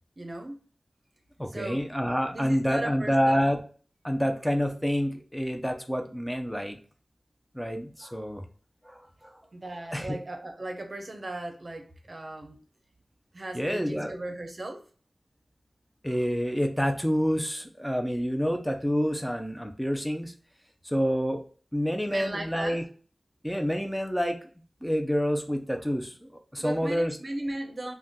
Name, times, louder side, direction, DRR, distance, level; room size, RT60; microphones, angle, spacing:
voice 1, 0.2-0.6 1.5-1.9 2.3-3.4 9.5-12.6 13.3-14.8 22.1-22.8 26.6-27.9, right 1 dB, 50° right, 4 dB, 0.6 m, -37 dB
voice 2, 1.4-3.6 4.0-6.8 7.5-8.4 8.9-9.3 9.9-10.2 13.5-14.1 16.0-20.3 20.8-21.4 21.7-22.8 23.4-24.4 24.8-26.1 26.5-27.2, equal, ahead, 4 dB, 0.5 m, -28 dB
2.5 x 2.2 x 3.5 m, 0.41 s
wide cardioid pair, 50°, 0 cm